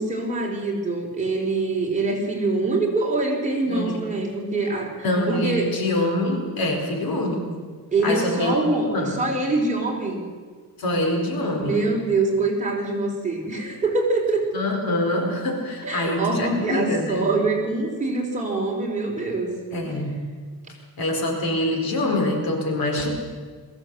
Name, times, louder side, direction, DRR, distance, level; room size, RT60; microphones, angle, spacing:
voice 1, 0.0-4.9 5.3-5.8 7.9-10.2 11.6-14.5 15.8-19.6 19.8-20.0, right 2 dB, 20° right, -1 dB, 4.3 m, -24 dB
voice 2, 3.7-4.0 5.0-7.5 8.0-8.5 8.9-9.2 10.8-11.8 14.5-17.2 19.7-20.2 21.0-23.1, left 1 dB, 65° left, 3 dB, 4.5 m, -25 dB
22.0 x 15.5 x 8.3 m, 1.5 s
wide cardioid pair, 165°, 38 cm